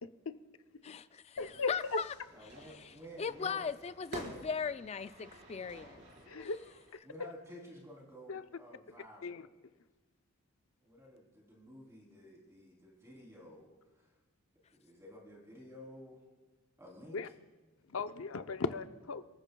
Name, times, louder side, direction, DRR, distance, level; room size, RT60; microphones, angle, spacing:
voice 1, 0.0-0.4 0.9-1.0 1.4-2.0 6.3-6.6 8.3-8.4 9.2-9.5 17.1-17.3 17.9-19.2, left 4 dB, 70° left, 0.7 m, -37 dB
voice 2, 0.8-2.1 2.7-6.0 6.4-6.5, left 6 dB, 30° left, 0.3 m, -39 dB
Fire / Fireworks, 1.4-6.9, right 1 dB, 55° right, 4.6 m, -50 dB
voice 3, 2.3-3.7 7.0-9.5 10.8-14.1 14.8-16.2 16.8-17.2, equal, 15° right, 3.3 m, -52 dB
29.0 x 14.0 x 2.3 m
head